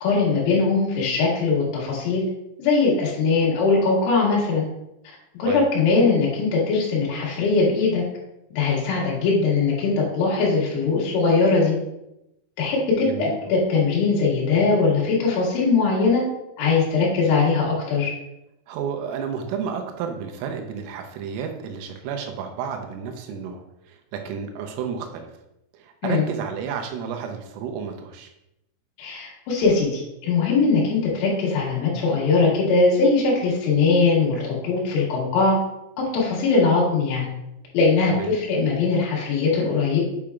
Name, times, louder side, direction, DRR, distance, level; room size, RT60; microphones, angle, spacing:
voice 1, 0.0-2.2 2.6-4.7 5.3-8.0 8.6-11.8 12.6-16.2 16.6-18.1 26.0-26.3 29.0-35.6 36.0-37.3 37.7-40.0, left 4 dB, 90° left, -4 dB, 4.6 m, -21 dB
voice 2, 13.0-13.4 18.7-25.3 25.7-28.3 38.2-38.3, right 7 dB, 90° right, 4 dB, 3.5 m, -31 dB
8.5 x 6.2 x 2.4 m, 0.86 s
omnidirectional pair, 5.8 m